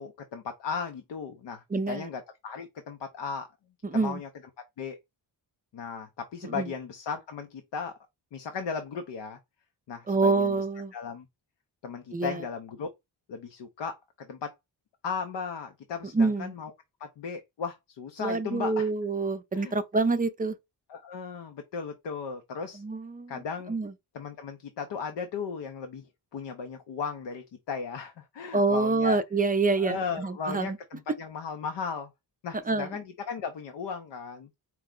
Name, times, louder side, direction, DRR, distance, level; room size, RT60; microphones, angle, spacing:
voice 1, 0.0-3.5 3.9-4.3 4.8-5.0 5.7-8.0 8.3-9.4 9.9-10.6 10.9-11.3 11.8-12.9 13.3-14.5 15.0-16.7 17.0-18.9 19.5-19.7 20.9-22.8 23.3-23.8 24.1-26.1 26.3-29.2 29.8-32.1 32.4-34.5, left 5 dB, 85° left, 0.7 m, -36 dB
voice 2, 1.7-2.1 3.8-4.2 6.4-6.7 10.1-10.9 12.1-12.4 16.1-16.5 18.2-20.5 22.7-23.4 23.7-23.9 28.5-30.8 32.7-33.0, right 3 dB, 20° right, 0.4 m, -27 dB
4.5 x 2.1 x 3.6 m
wide cardioid pair, 105°, 42 cm